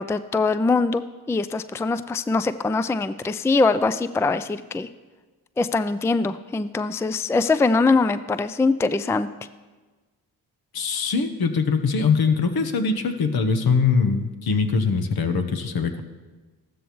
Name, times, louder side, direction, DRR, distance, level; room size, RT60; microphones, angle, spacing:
voice 1, 0.0-4.9 5.6-9.3, left 3 dB, 5° left, 13 dB, 0.4 m, -22 dB
voice 2, 10.7-16.0, left 5 dB, 65° left, 8 dB, 1.1 m, -22 dB
14.5 x 12.5 x 3.1 m, 1.3 s
supercardioid pair, 50°, 40 cm